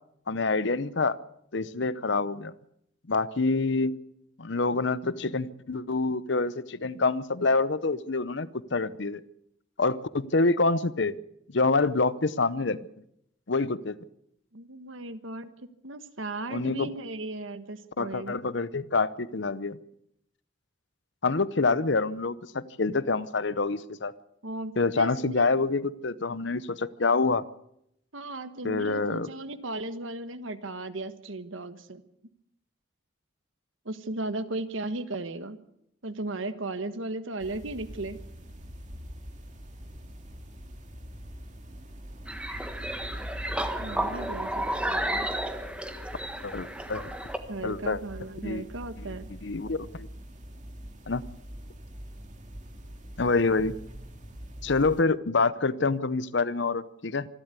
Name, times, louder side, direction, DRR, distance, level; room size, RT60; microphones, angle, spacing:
voice 1, 0.3-1.2 1.5-2.5 3.1-3.9 4.4-9.2 9.8-11.2 11.5-12.8 13.5-14.0 16.5-16.9 18.0-19.8 21.2-24.1 24.8-27.4 28.6-29.3 46.4-47.1 47.6-48.0 48.4-48.6 49.0-49.1 49.4-50.1 51.1-51.2 53.2-53.7 54.6-57.3, left 3 dB, 60° left, 16 dB, 0.8 m, -26 dB
voice 2, 14.5-15.5 15.8-18.4 24.4-25.5 28.1-32.0 33.8-35.6 36.0-38.2 43.8-45.3 47.5-49.3, right 2 dB, 70° right, 11 dB, 1.4 m, -36 dB
sound 1, 37.4-55.0, equal, 35° right, 2.5 m, -43 dB
sound 2, 42.3-47.4, right 1 dB, 5° right, 1.4 m, -32 dB
25.5 x 12.5 x 8.3 m, 0.76 s
head